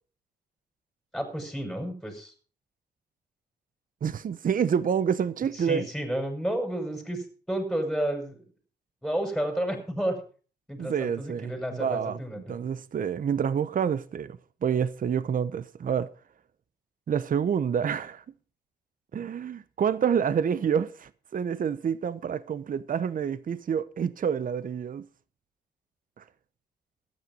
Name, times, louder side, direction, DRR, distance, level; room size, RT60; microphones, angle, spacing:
voice 1, 1.1-2.3 5.5-8.4 9.0-10.2 10.7-12.5, right 1 dB, ahead, 5.9 m, -31 dB
voice 2, 4.0-5.9 10.8-12.2 12.5-16.1 17.1-18.2 19.1-25.1 26.2-26.3, right 7 dB, 50° right, 0.8 m, -28 dB
13.5 x 9.8 x 5.4 m
cardioid pair, 80°, 18 cm